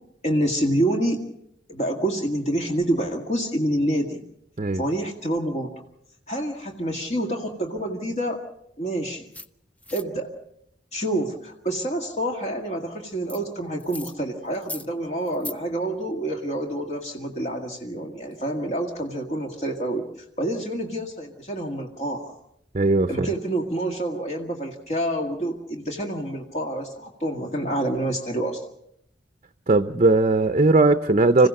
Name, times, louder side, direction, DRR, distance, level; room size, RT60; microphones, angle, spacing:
voice 1, 0.2-1.2 1.7-4.2 4.7-5.7 6.3-8.4 8.8-9.3 9.9-10.3 10.9-20.1 20.4-22.4 23.1-28.6, right 1 dB, 40° left, 2 dB, 2.0 m, -27 dB
sound 1, 9.3-9.5 9.8-10.0 13.3-13.4 13.8-14.1 14.5-14.9 15.3-15.5, left 2 dB, 10° left, 0.7 m, -37 dB
voice 2, 22.7-23.3 29.7-31.5, right 2 dB, 40° right, 9 dB, 0.7 m, -18 dB
26.5 x 16.0 x 6.6 m, 0.76 s
head